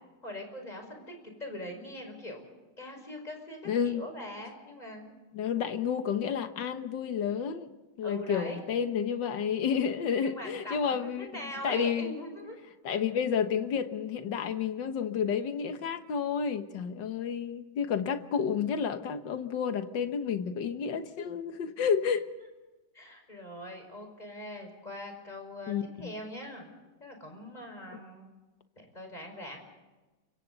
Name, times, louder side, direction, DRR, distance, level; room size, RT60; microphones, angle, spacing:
voice 1, 0.2-2.4 2.8-5.1 8.0-8.6 10.2-12.6 22.9-26.7 27.0-28.3 28.8-29.6, left 1 dB, 20° left, 3 dB, 5.5 m, -42 dB
voice 2, 3.7-4.0 5.3-7.7 8.0-11.3 11.6-12.2 12.8-22.3 25.7-25.8, left 7 dB, 85° left, 8 dB, 1.9 m, -30 dB
29.5 x 24.5 x 4.0 m, 1.2 s
omnidirectional pair, 1.9 m